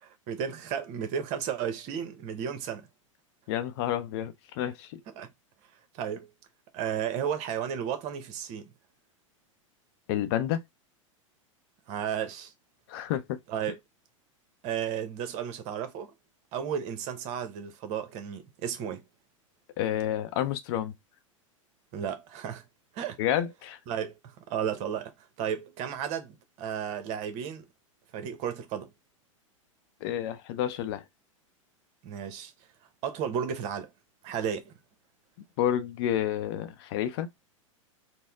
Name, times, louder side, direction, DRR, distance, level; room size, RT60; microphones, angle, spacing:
voice 1, 0.0-2.9 5.2-5.3 5.9-6.3 6.7-8.7 11.9-12.5 13.5-13.8 14.6-16.1 16.5-19.0 21.9-22.6 22.9-23.2 23.9-27.6 28.1-28.9 32.0-32.5 33.0-33.9 34.2-34.7, right 8 dB, 40° right, 0.9 m, -33 dB
voice 2, 3.5-5.0 10.1-10.6 12.9-13.4 19.8-20.9 23.2-23.8 30.0-31.0 35.6-37.3, left 11 dB, 50° left, 0.6 m, -29 dB
4.1 x 2.1 x 3.5 m
figure-of-eight pair, 95°, 17 cm